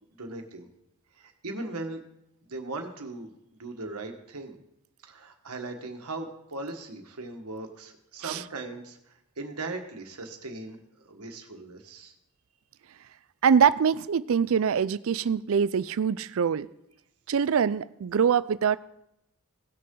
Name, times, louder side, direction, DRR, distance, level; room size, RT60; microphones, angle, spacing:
voice 1, 0.2-0.7 1.1-2.0 2.5-4.6 5.0-12.1, right 2 dB, 90° right, 4 dB, 1.4 m, -39 dB
voice 2, 13.4-16.7 17.3-18.8, right 7 dB, 65° right, 18 dB, 0.4 m, -24 dB
17.5 x 6.7 x 3.8 m, 0.82 s
head